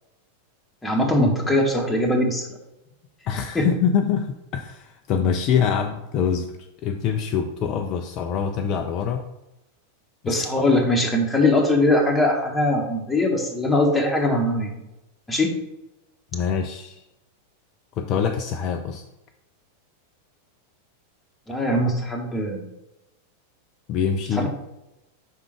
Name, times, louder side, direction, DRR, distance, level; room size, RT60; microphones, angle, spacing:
voice 1, 0.8-2.5 3.5-3.7 10.2-14.7 15.3-15.6 21.5-22.6 24.3-24.5, left 1 dB, 10° left, 1 dB, 1.1 m, -21 dB
voice 2, 3.3-6.5 6.8-9.3 10.2-10.8 16.3-17.0 18.0-19.0 23.9-24.5, left 7 dB, 35° left, 5 dB, 0.4 m, -25 dB
5.7 x 3.7 x 4.6 m, 0.94 s
figure-of-eight pair, 90°, 0 cm